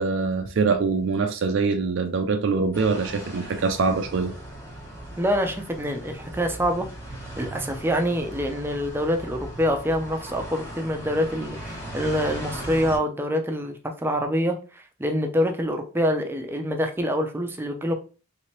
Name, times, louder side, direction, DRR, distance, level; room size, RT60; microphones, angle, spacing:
voice 1, 0.0-4.3, right 4 dB, 65° right, 0.4 m, -24 dB
sound 1, 2.7-13.0, right 1 dB, 10° left, 1.4 m, -38 dB
voice 2, 5.2-6.9 7.4-17.9, equal, 10° right, 0.5 m, -26 dB
3.3 x 2.9 x 3.1 m
head